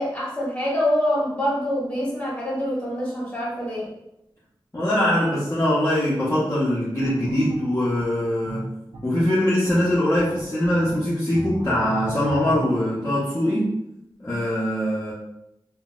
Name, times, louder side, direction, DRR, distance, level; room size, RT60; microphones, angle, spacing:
voice 1, 0.0-3.9, left 1 dB, 15° left, -6 dB, 1.4 m, -25 dB
voice 2, 4.7-8.7 9.0-13.7 14.2-15.1, left 1 dB, 30° left, -10 dB, 0.8 m, -22 dB
sound 1, 7.0-12.8, right 1 dB, 85° right, 0.4 m, -35 dB
3.9 x 2.3 x 2.4 m, 0.85 s
wide cardioid pair, 65°, 9 cm